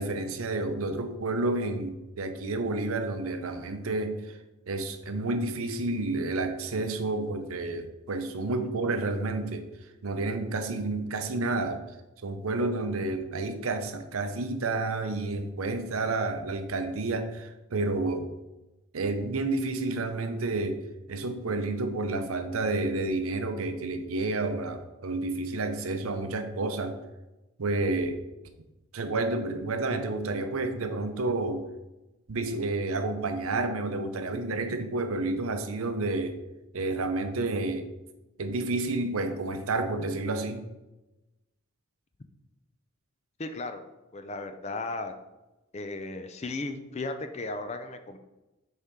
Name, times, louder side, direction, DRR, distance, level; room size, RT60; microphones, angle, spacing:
voice 1, 0.0-4.4 4.7-9.7 10.0-11.8 12.2-18.3 18.9-20.8 21.1-27.0 27.6-28.2 28.9-31.7 32.3-36.4 36.7-37.9 38.4-40.7, right 2 dB, 80° right, 8 dB, 0.7 m, -30 dB
voice 2, 43.4-43.8 44.1-45.1 45.7-48.2, left 2 dB, 30° left, 8 dB, 0.4 m, -35 dB
6.7 x 4.4 x 3.6 m, 1.0 s
head